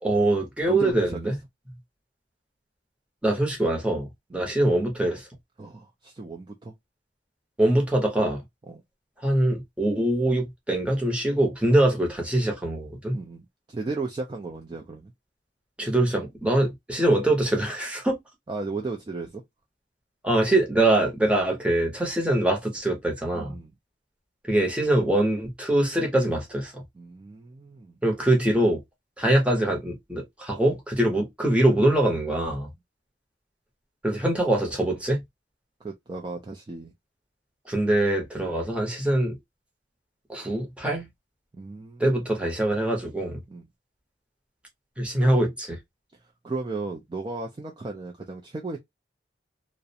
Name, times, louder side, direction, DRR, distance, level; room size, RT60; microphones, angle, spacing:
voice 1, 0.0-1.3 3.2-4.1 4.3-5.3 7.6-8.4 9.2-13.2 15.8-18.2 20.2-23.5 24.5-26.8 28.0-28.8 29.2-32.7 34.0-35.2 37.7-39.3 40.3-41.1 42.0-43.4 45.0-45.8, right 1 dB, 5° right, 0.7 m, -23 dB
voice 2, 0.7-1.3 4.3-4.4 5.6-6.7 8.7-8.8 13.1-15.1 18.5-19.4 23.3-23.7 27.0-28.0 35.8-36.9 41.5-42.2 43.5-43.7 46.1-48.8, right 3 dB, 25° right, 0.3 m, -35 dB
2.4 x 2.0 x 2.6 m
head